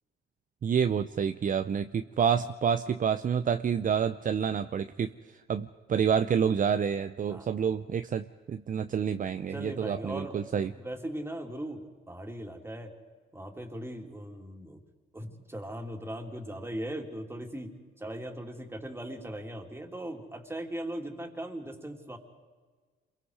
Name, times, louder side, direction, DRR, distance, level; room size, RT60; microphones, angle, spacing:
voice 1, 0.6-5.1 5.5-10.7, right 7 dB, 45° right, 9 dB, 0.7 m, -28 dB
voice 2, 9.5-12.9 13.3-14.8 15.1-22.2, right 1 dB, 10° right, 3 dB, 3.1 m, -39 dB
28.0 x 22.5 x 4.9 m, 1.4 s
cardioid pair, 90°, 20 cm